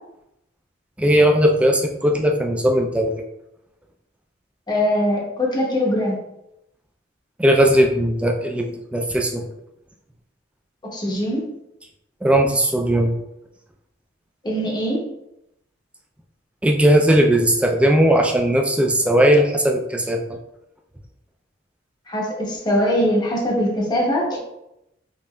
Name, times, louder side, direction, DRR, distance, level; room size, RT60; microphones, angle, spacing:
voice 1, 1.0-3.2 7.4-9.4 12.2-13.2 16.6-20.4, right 1 dB, 5° right, 2 dB, 0.3 m, -18 dB
voice 2, 4.7-6.2 10.8-11.5 14.4-15.0 22.1-24.4, equal, 20° left, -1 dB, 0.7 m, -22 dB
5.3 x 2.5 x 2.2 m, 0.84 s
head